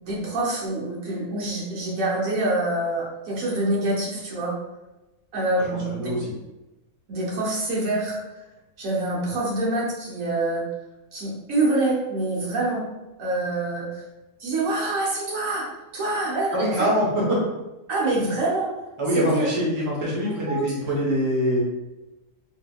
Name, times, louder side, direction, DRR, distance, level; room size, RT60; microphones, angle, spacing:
voice 1, 0.0-4.6 5.3-6.1 7.1-8.2 8.8-10.6 11.1-12.9 13.2-14.0 14.4-16.9 17.9-18.7 19.1-19.4 20.3-20.8, right 2 dB, 70° right, -5 dB, 1.2 m, -26 dB
voice 2, 5.6-6.3 16.5-17.4 19.0-21.6, equal, 25° right, -5 dB, 0.7 m, -24 dB
3.6 x 2.7 x 2.2 m, 1.0 s
omnidirectional pair, 1.5 m